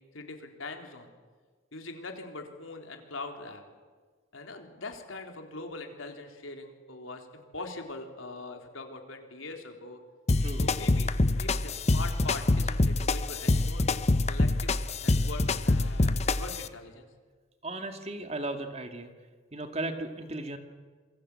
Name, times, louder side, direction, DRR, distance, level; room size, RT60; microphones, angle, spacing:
voice 1, 0.1-1.1 1.7-3.6 4.3-10.0 10.6-14.0 14.3-17.1, left 3 dB, 85° left, 4 dB, 3.8 m, -42 dB
sound 1, 10.3-16.7, left 2 dB, 35° left, 0.8 m, -26 dB
voice 2, 17.6-19.1 19.5-20.6, right 2 dB, 30° right, 7 dB, 2.0 m, -36 dB
27.5 x 22.5 x 8.6 m, 1.5 s
head